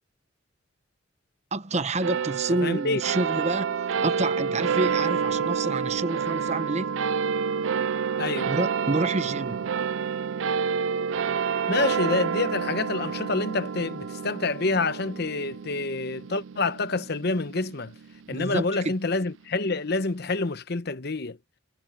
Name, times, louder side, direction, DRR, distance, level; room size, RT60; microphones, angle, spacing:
voice 1, 1.5-3.8 4.0-7.0 8.5-9.6 18.3-18.9, right 2 dB, 35° right, 0.9 m, -28 dB
sound 1, 2.0-18.7, right 6 dB, 70° right, 0.4 m, -29 dB
voice 2, 2.6-3.0 8.2-8.5 11.7-17.9 18.3-21.4, left 3 dB, 55° left, 0.9 m, -27 dB
head